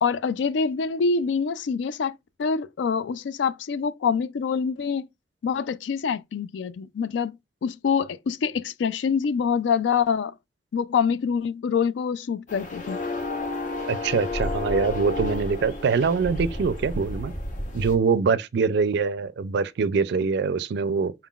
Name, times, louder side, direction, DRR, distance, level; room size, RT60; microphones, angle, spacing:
voice 1, 0.0-5.1 5.4-7.3 7.6-10.3 10.7-13.0, left 6 dB, 75° left, 0.3 m, -25 dB
sound 1, 12.5-18.0, left 2 dB, 45° left, 0.8 m, -31 dB
voice 2, 13.9-17.3 17.7-21.1, right 5 dB, 65° right, 0.4 m, -24 dB
4.4 x 3.7 x 2.3 m
head